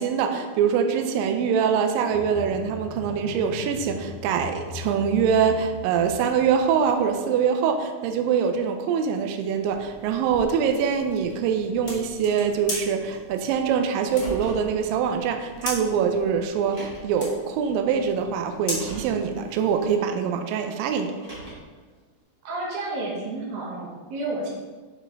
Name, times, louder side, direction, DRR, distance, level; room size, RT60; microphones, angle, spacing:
voice 1, 0.0-21.1, right 7 dB, 90° right, 6 dB, 2.0 m, -24 dB
sound 1, 2.1-7.1, left 5 dB, 70° left, 2.0 m, -39 dB
sound 2, 9.6-19.9, left 1 dB, 30° left, 1.5 m, -39 dB
Car, 14.0-14.7 15.8-15.9 16.6-17.2 18.5-19.2 21.0-21.8, right 2 dB, 30° right, 1.4 m, -39 dB
voice 2, 22.4-24.5, right 2 dB, 70° right, -2 dB, 2.8 m, -31 dB
6.7 x 6.2 x 3.4 m, 1.4 s
omnidirectional pair, 4.6 m